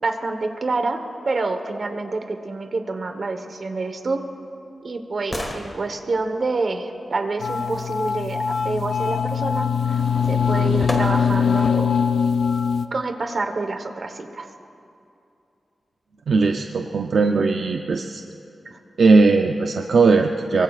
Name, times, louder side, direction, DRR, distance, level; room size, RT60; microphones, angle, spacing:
voice 1, 0.0-4.2 4.8-9.7 10.3-11.9 12.9-14.5 18.6-18.8, right 3 dB, 45° right, 6 dB, 1.1 m, -27 dB
sound 1, 3.8-7.9 10.0-10.1 10.9-11.6 12.1-12.2, left 1 dB, 25° left, 1.7 m, -36 dB
sound 2, 7.4-12.9, left 6 dB, 85° left, 0.6 m, -22 dB
voice 2, 16.3-18.2 19.0-20.6, right 4 dB, 65° right, 4 dB, 0.6 m, -18 dB
25.0 x 23.5 x 2.4 m, 2.7 s
wide cardioid pair, 155°, 0 cm